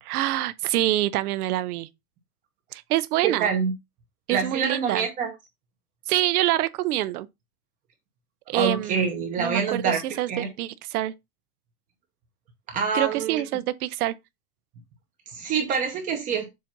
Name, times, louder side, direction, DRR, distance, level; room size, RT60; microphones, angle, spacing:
voice 1, 0.0-1.9 2.7-3.5 4.3-5.1 6.1-7.3 8.5-9.0 9.4-11.1 12.9-14.1, right 15 dB, 75° right, 0.7 m, -26 dB
voice 2, 3.2-3.7 4.3-5.3 8.5-10.0 10.3-10.5 12.7-13.4 15.3-16.5, right 6 dB, 20° right, 0.8 m, -26 dB
7.5 x 2.6 x 5.8 m
supercardioid pair, 170°, 45 cm